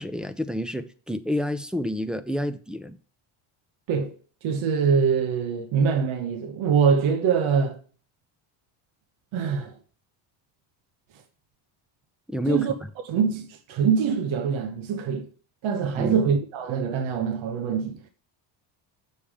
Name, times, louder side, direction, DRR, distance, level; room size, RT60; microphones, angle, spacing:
voice 1, 0.0-3.0 12.3-12.9 15.9-16.2, left 1 dB, ahead, 0.5 m, -29 dB
voice 2, 4.4-7.8 9.3-9.7 12.5-12.7 13.1-15.2 15.6-18.0, right 6 dB, 70° right, 1.2 m, -24 dB
7.1 x 5.4 x 4.9 m
cardioid pair, 120°, 48 cm